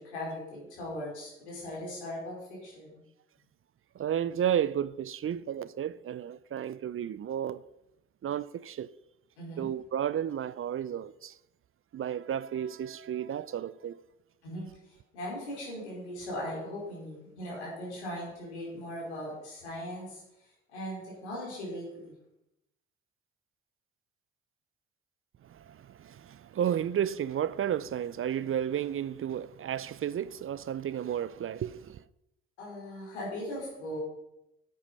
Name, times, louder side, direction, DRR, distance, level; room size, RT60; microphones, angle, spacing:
voice 1, 0.0-3.0 9.4-9.7 14.4-14.7 15.1-20.2 20.7-22.1 32.6-34.0, left 1 dB, 90° left, 4.7 m, -39 dB
voice 2, 4.0-7.6 8.2-8.9 9.6-11.3 11.9-14.0 25.5-32.0, right 9 dB, 40° right, 0.6 m, -32 dB
10.5 x 9.0 x 5.6 m
hypercardioid pair, 50°, 33 cm